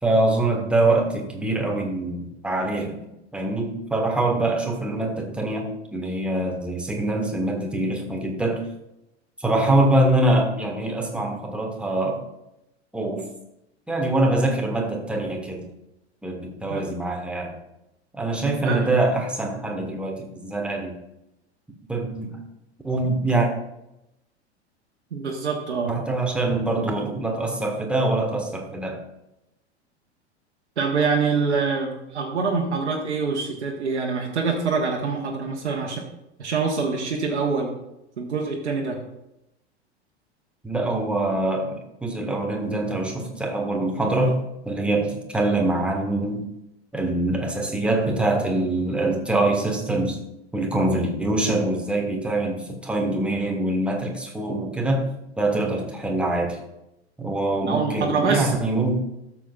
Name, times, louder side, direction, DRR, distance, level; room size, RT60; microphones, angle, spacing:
voice 1, 0.0-3.1 3.3-8.7 9.4-12.2 12.9-13.3 13.9-15.7 16.2-17.6 18.1-21.0 21.9-22.4 22.8-23.5 25.9-29.0 40.6-44.4 44.6-46.5 46.9-50.2 50.5-55.1 55.4-56.6 57.2-59.0, right 2 dB, 5° right, 1 dB, 1.5 m, -24 dB
voice 2, 18.6-19.0 25.1-26.0 30.8-36.0 36.4-37.7 38.2-39.0 57.6-58.5, right 4 dB, 75° right, -1 dB, 1.3 m, -25 dB
12.5 x 7.3 x 2.4 m, 0.88 s
figure-of-eight pair, 90°, 34 cm